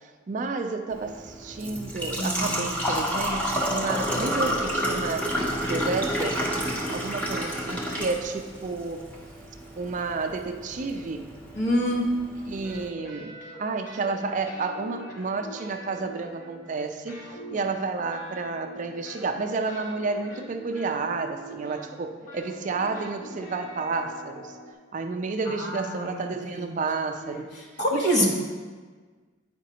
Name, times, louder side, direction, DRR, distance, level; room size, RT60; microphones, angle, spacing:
voice 1, 0.3-5.3 5.7-6.6 6.9-9.1 9.8-11.3 12.5-17.2 17.5-24.5 24.9-27.4 27.9-28.3, right 4 dB, 40° right, 6 dB, 0.4 m, -31 dB
Engine / Trickle dribble / Fill (with liquid), 0.9-12.9, equal, 5° left, 0.8 m, -30 dB
voice 2, 2.2-2.6 11.5-12.1 25.5-26.3 26.5-26.8 27.2-27.4 27.8-28.3, equal, 60° left, -3 dB, 1.2 m, -26 dB
sound 1, 12.6-14.2 14.4-16.8 17.1-24.7, right 1 dB, 45° left, 0.9 m, -43 dB
8.9 x 5.1 x 2.8 m, 1.5 s
head